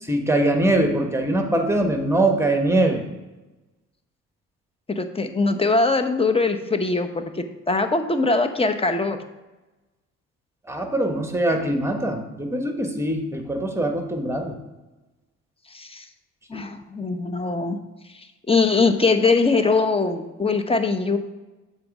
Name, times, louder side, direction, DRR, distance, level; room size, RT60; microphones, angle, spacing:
voice 1, 0.0-3.0 10.7-14.6 16.5-16.7, right 1 dB, 10° right, 4 dB, 1.3 m, -22 dB
voice 2, 5.0-9.2 15.7-16.0 16.5-17.8 18.5-21.2, left 3 dB, 20° left, 7 dB, 0.8 m, -22 dB
7.6 x 4.1 x 6.0 m, 1.1 s
cardioid pair, 90°, 30 cm